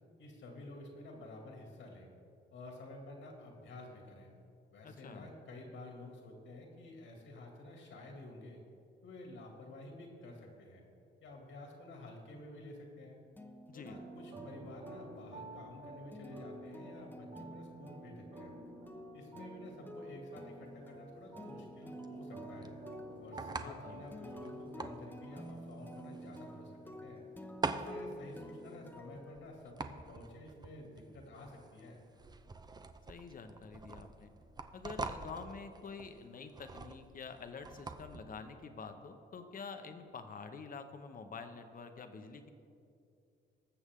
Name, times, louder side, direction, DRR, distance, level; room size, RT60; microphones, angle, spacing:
voice 1, 0.2-2.1 2.5-4.3 4.7-8.6 9.0-10.8 11.2-13.2 13.7-18.5 19.1-22.7 23.2-27.2 27.7-32.0, left 2 dB, 70° left, 1 dB, 2.5 m, -51 dB
voice 2, 4.8-5.3 13.7-14.0 23.6-24.0 33.1-34.3 34.7-42.5, left 5 dB, 45° left, 7 dB, 1.0 m, -47 dB
sound 1, 13.4-30.0, equal, 10° left, 0.9 m, -50 dB
sound 2, 13.8-26.1, right 2 dB, 65° right, 2.4 m, -53 dB
sound 3, 20.5-38.2, right 3 dB, 20° right, 0.6 m, -45 dB
19.5 x 7.1 x 3.7 m, 2.5 s
cardioid pair, 90°, 20 cm